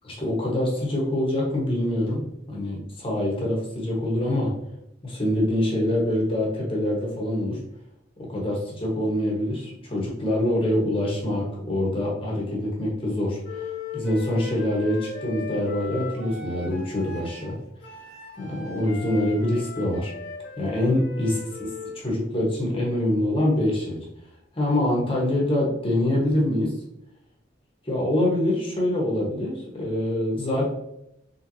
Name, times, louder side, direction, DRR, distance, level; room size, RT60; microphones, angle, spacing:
voice 1, 0.0-4.6 5.0-7.6 8.3-17.6 18.4-20.1 20.6-21.4 21.9-24.0 24.5-26.7 27.8-30.7, left 1 dB, 30° left, -3 dB, 1.1 m, -25 dB
Wind instrument woodwind instrument, 13.4-22.0, left 3 dB, 80° left, 1.1 m, -38 dB
4.4 x 3.5 x 2.7 m, 0.81 s
head